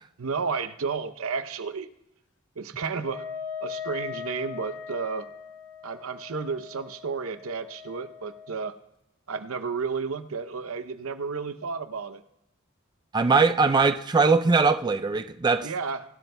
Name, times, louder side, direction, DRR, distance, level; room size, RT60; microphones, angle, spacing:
voice 1, 0.2-1.9 2.6-3.3 3.6-5.3 5.8-8.7 9.3-12.2 15.6-16.0, right 5 dB, 80° right, 12 dB, 0.7 m, -32 dB
Wind instrument woodwind instrument, 3.0-8.7, left 7 dB, 75° left, 1.0 m, -40 dB
voice 2, 13.1-15.7, right 4 dB, 20° right, 9 dB, 0.3 m, -21 dB
21.5 x 12.0 x 2.2 m, 0.88 s
head